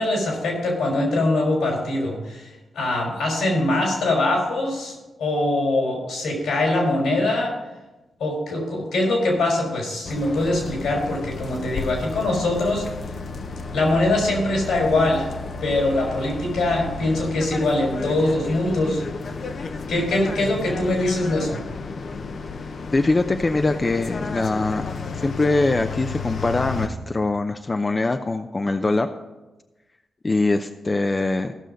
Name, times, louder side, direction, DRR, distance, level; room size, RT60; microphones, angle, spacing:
voice 1, 0.0-7.6 8.2-12.9 13.7-19.0 19.9-21.6, left 2 dB, 80° left, 0 dB, 4.0 m, -23 dB
sound 1, 10.0-26.9, left 4 dB, 65° left, 0.8 m, -32 dB
voice 2, 22.9-24.9 25.2-29.1 30.2-31.5, left 2 dB, 35° left, 6 dB, 0.6 m, -22 dB
15.0 x 6.3 x 5.2 m, 1.1 s
supercardioid pair, 40°, 0 cm